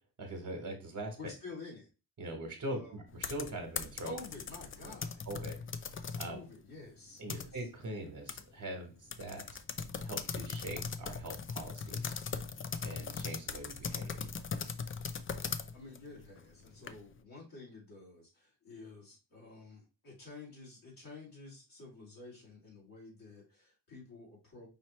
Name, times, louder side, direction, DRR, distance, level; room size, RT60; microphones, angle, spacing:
voice 1, 0.2-1.2 2.2-4.1 5.3-5.6 6.1-6.4 7.2-9.4 10.0-12.2 12.8-14.3, right 1 dB, 50° right, 4 dB, 1.4 m, -42 dB
voice 2, 1.2-1.9 2.7-3.0 4.0-5.2 6.2-7.6 15.4-24.7, left 3 dB, 55° left, -5 dB, 2.8 m, -50 dB
sound 1, 3.1-6.4 6.8-7.8 8.3-8.4 8.7-8.8 9.1-17.2, left 5 dB, 35° left, 0.4 m, -40 dB
5.5 x 2.9 x 3.1 m, 0.31 s
cardioid pair, 120°, 40 cm